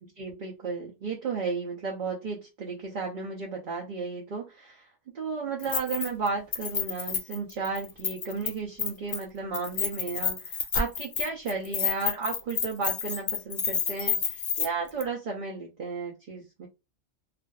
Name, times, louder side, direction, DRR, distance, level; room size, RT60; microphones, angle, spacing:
voice 1, 0.0-4.9 5.1-16.7, right 4 dB, 55° right, -1 dB, 0.6 m, -34 dB
Keys jangling, 5.6-6.3 6.5-8.5 8.8-9.2 9.5-14.7 15.0-15.1, left 7 dB, 65° left, 0.3 m, -29 dB
2.4 x 2.3 x 2.3 m, 0.26 s
omnidirectional pair, 1.2 m